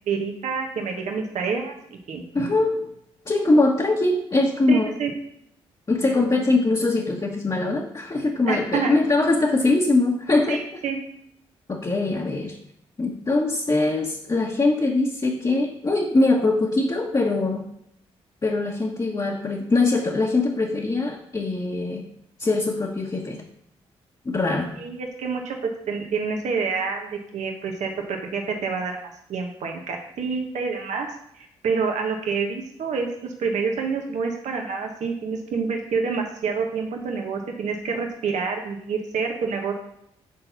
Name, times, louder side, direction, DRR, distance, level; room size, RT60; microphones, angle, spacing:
voice 1, 0.1-1.7 2.1-2.2 4.7-5.1 8.5-8.9 10.5-11.0 24.8-29.0 29.3-31.1 31.3-39.7, right 5 dB, 70° right, 2 dB, 1.1 m, -27 dB
voice 2, 2.3-2.8 3.3-4.9 5.9-10.6 11.7-12.6 13.0-17.7 18.4-22.0 22.4-23.4 24.2-24.7, left 2 dB, 30° left, -2 dB, 1.2 m, -22 dB
6.5 x 4.0 x 5.8 m, 0.76 s
hypercardioid pair, 45°, 13 cm